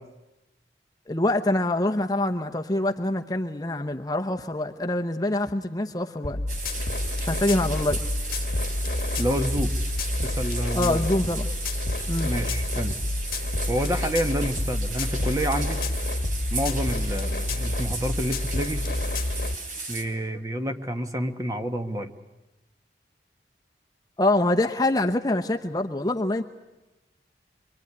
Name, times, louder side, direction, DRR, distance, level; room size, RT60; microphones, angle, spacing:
voice 1, 1.1-6.4 7.3-8.0 10.7-11.5 12.1-12.3 24.2-26.4, left 1 dB, 20° left, 5 dB, 0.9 m, -25 dB
sound 1, 6.2-19.6, left 2 dB, 50° left, 1.3 m, -28 dB
sound 2, 6.5-20.0, right 3 dB, 50° right, 3.3 m, -36 dB
voice 2, 9.2-9.8 10.2-11.1 12.2-12.9 13.7-15.8 16.5-18.9 19.9-22.1, equal, 20° right, 6 dB, 1.4 m, -28 dB
25.5 x 23.5 x 9.7 m, 1.0 s
head